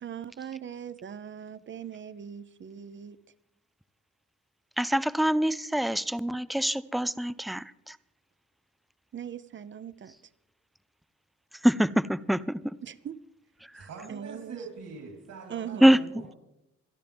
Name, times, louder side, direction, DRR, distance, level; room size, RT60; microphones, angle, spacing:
voice 1, 0.0-3.2 9.1-10.1 12.8-13.2 14.1-14.6 15.5-16.1, right 8 dB, 40° right, 15 dB, 0.8 m, -40 dB
voice 2, 4.8-8.0 11.6-12.7 13.7-13.9 15.8-16.0, equal, ahead, 17 dB, 0.4 m, -24 dB
voice 3, 13.7-16.4, right 4 dB, 70° right, 1 dB, 3.8 m, -44 dB
25.5 x 11.0 x 3.5 m, 0.84 s
cardioid pair, 90°, 30 cm